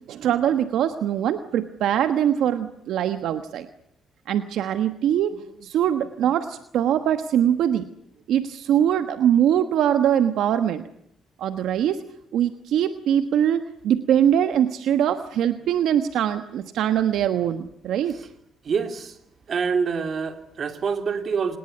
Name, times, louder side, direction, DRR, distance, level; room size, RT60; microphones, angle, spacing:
voice 1, 0.1-3.7 4.3-7.8 8.3-10.8 11.4-12.0 12.3-18.2, right 10 dB, 80° right, 9 dB, 1.3 m, -22 dB
voice 2, 18.6-19.2 19.5-21.6, right 5 dB, 50° right, 7 dB, 2.9 m, -26 dB
26.5 x 19.5 x 9.9 m, 0.75 s
cardioid pair, 90°, 0 cm